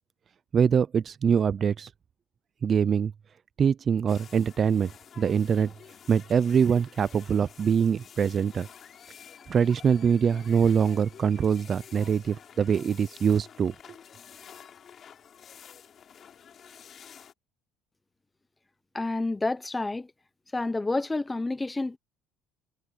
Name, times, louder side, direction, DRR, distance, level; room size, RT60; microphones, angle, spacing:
voice 1, 0.5-1.9 2.6-3.1 3.6-4.9 5.2-5.7 6.1-8.7 9.5-13.7, right 7 dB, 35° right, 0.4 m, -24 dB
sound 1, 4.1-17.3, left 8 dB, 40° left, 4.8 m, -50 dB
voice 2, 18.9-20.1 20.5-22.0, left 2 dB, 10° left, 0.8 m, -29 dB
cardioid pair, 135°, 0 cm